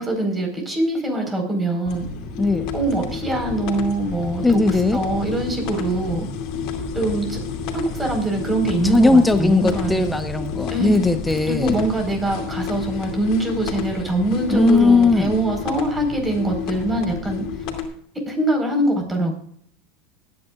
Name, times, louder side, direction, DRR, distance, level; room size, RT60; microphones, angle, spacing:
voice 1, 0.0-2.1 2.7-4.6 4.9-6.3 6.9-7.4 7.7-10.1 10.7-11.0 11.5-17.4 18.3-19.4, right 1 dB, 15° right, 3 dB, 4.5 m, -23 dB
sound 1, 1.8-17.8, left 5 dB, 55° left, 2.5 m, -30 dB
voice 2, 2.4-2.7 4.4-5.0 8.9-11.8 14.5-15.3, left 3 dB, 10° left, 8 dB, 1.1 m, -18 dB
21.0 x 9.7 x 2.5 m, 0.63 s
hypercardioid pair, 95°, 0 cm